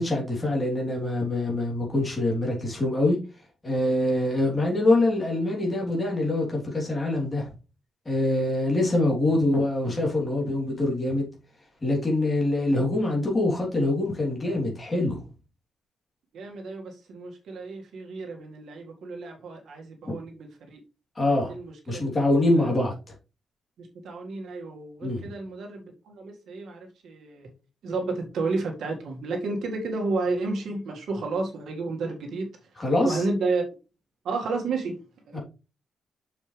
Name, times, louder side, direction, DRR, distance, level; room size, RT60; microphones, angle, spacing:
voice 1, 0.0-3.2 3.6-7.5 8.1-11.3 11.8-15.2 21.2-21.5 21.9-22.9 25.0-25.2 32.8-33.3 35.3-35.4, left 2 dB, 20° left, 3.4 m, -24 dB
voice 2, 16.3-20.8 21.5-22.0 22.5-22.7 23.8-27.5 27.8-32.5 33.0-33.6 34.2-35.4, right 3 dB, 85° right, 2.0 m, -31 dB
7.1 x 6.7 x 3.4 m
wide cardioid pair, 155°, 0 cm